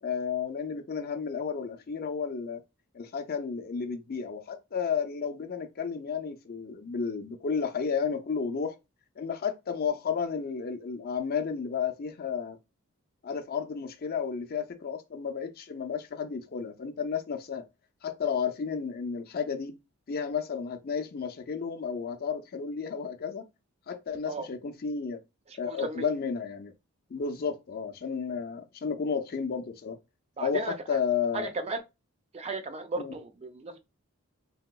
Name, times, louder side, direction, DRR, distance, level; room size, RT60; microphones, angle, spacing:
voice 1, 0.0-2.6 2.9-8.8 9.2-12.6 13.2-17.6 18.0-19.7 20.1-23.4 23.9-25.2 25.6-26.7 27.1-30.0 30.4-31.5 33.0-33.1, left 6 dB, 45° left, 0.5 m, -32 dB
voice 2, 25.5-26.1 30.4-31.0 31.3-31.8 32.3-33.8, right 3 dB, 30° right, 0.4 m, -35 dB
3.4 x 2.8 x 2.2 m
head